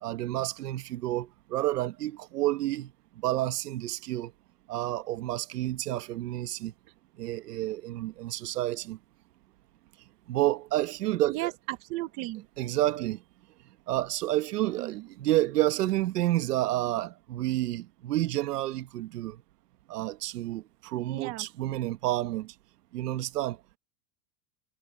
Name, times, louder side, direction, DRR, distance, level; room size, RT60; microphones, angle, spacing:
voice 1, 0.0-2.9 3.2-4.3 4.7-6.7 7.2-9.0 10.3-11.5 12.6-13.2 13.9-19.4 19.9-22.5 22.9-23.6, right 15 dB, 85° right, 1.5 m, -29 dB
voice 2, 11.3-12.5 14.7-15.1 21.1-21.5, right 17 dB, 30° right, 1.7 m, -35 dB
supercardioid pair, 180°, 46 cm